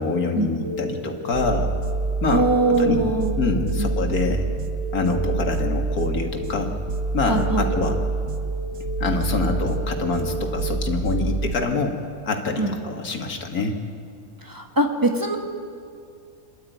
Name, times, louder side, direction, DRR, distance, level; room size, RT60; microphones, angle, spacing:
voice 1, 0.0-1.7 2.2-3.0 3.4-4.4 4.9-6.7 7.1-8.0 9.0-12.0 12.3-13.8, left 3 dB, 85° left, 3 dB, 2.3 m, -25 dB
sound 1, 0.6-10.6, right 1 dB, 60° right, 4.9 m, -35 dB
sound 2, 1.3-11.5, right 3 dB, 80° right, 1.5 m, -27 dB
voice 2, 2.3-3.3 3.8-3.9 7.3-8.0 12.6-12.8 14.4-15.4, right 2 dB, 15° right, 2 dB, 1.8 m, -22 dB
26.5 x 12.0 x 9.3 m, 2.3 s
omnidirectional pair, 1.5 m